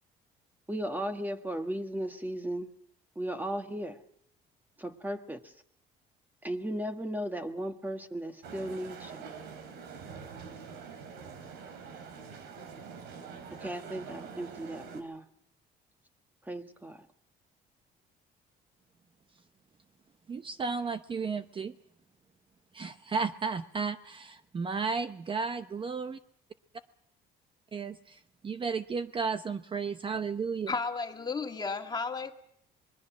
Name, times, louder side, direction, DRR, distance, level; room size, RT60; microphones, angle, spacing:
voice 1, 0.7-2.7 3.1-4.0 4.8-5.5 6.4-9.3 13.6-15.3 16.4-17.1, right 1 dB, 10° right, 1.6 m, -36 dB
sound 1, 8.4-15.0, right 6 dB, 85° right, 3.3 m, -45 dB
voice 2, 20.3-21.7 22.7-26.2 27.7-30.7, right 5 dB, 30° right, 0.8 m, -33 dB
voice 3, 30.7-32.3, left 4 dB, 25° left, 2.1 m, -33 dB
25.0 x 21.0 x 6.2 m
cardioid pair, 110°, 17 cm